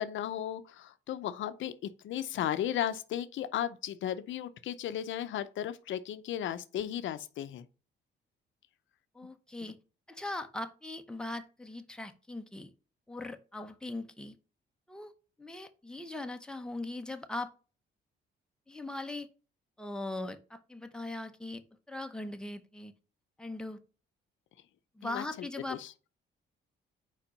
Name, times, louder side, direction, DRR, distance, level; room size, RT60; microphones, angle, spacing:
voice 1, 0.0-1.7 2.0-7.7 25.0-25.2 25.7-25.9, left 11 dB, 75° left, 0.6 m, -35 dB
voice 2, 9.1-9.8 10.1-12.7 13.1-14.3 14.9-15.1 15.4-17.5 18.7-19.3 19.8-21.6 21.9-22.9 23.4-23.8 25.0-25.8, left 2 dB, 5° left, 0.8 m, -40 dB
4.9 x 4.4 x 5.2 m
cardioid pair, 90°, 20 cm